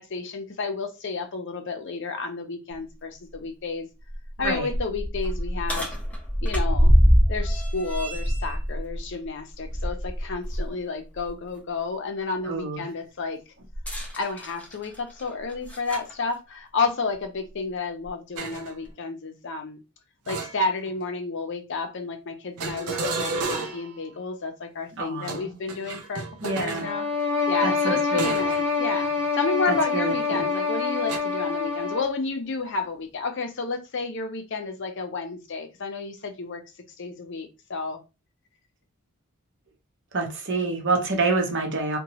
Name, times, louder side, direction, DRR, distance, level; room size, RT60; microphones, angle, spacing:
voice 1, 0.0-3.9 4.4-6.0 6.4-6.9 7.3-13.4 14.1-19.8 20.3-27.1 27.5-36.6 37.0-38.0, left 4 dB, 55° left, 0.5 m, -31 dB
sound 1, 2.7-2.8 3.3-3.4 4.0-10.7 11.1-11.3 13.7-16.1 17.1-17.2 18.0-18.1, equal, 5° left, 0.5 m, -24 dB
voice 2, 12.5-12.8 25.0-25.6 26.4-26.9 27.6-28.3 29.9-30.4 40.1-42.0, right 3 dB, 55° right, 0.8 m, -27 dB
sound 2, 18.4-18.7 20.3-21.0 22.6-24.0 25.2-26.9 28.2-28.6 29.0-29.3 31.1-31.2, right 3 dB, 80° right, 0.5 m, -32 dB
sound 3, 26.8-32.2, left 4 dB, 25° right, 1.0 m, -26 dB
2.9 x 2.2 x 2.8 m
head